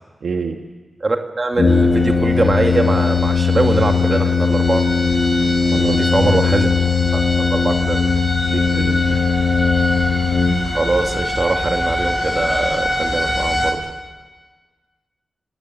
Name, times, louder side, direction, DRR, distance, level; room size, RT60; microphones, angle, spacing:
voice 1, 0.2-0.6 5.7-6.4 8.4-9.2, right 5 dB, 85° right, 4 dB, 1.5 m, -27 dB
voice 2, 1.0-4.8 5.8-6.7 7.1-8.0 10.7-13.8, right 2 dB, 40° right, 4 dB, 2.5 m, -21 dB
Brass instrument, 1.6-11.0, left 5 dB, 60° left, 2.2 m, -18 dB
sound 1, 1.6-13.7, equal, 25° left, 7.8 m, -25 dB
29.5 x 18.5 x 8.2 m, 1.4 s
cardioid pair, 60°, 0 cm